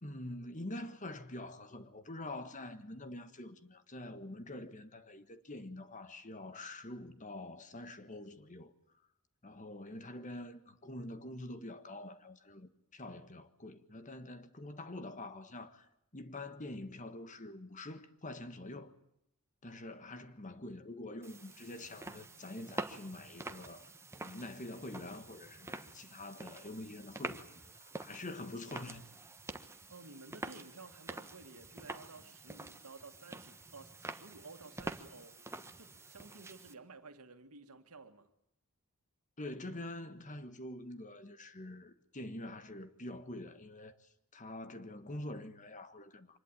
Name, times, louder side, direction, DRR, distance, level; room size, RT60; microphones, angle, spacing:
voice 1, 0.0-8.7 9.4-15.9 16.1-18.9 19.6-23.9 24.2-29.1 39.4-44.0 44.3-46.4, left 1 dB, 35° left, 1.6 m, -46 dB
sound 1, 21.2-36.7, right 2 dB, 10° right, 1.2 m, -47 dB
voice 2, 29.9-35.4 35.8-38.3, right 3 dB, 80° right, 2.1 m, -54 dB
25.0 x 20.0 x 9.0 m
head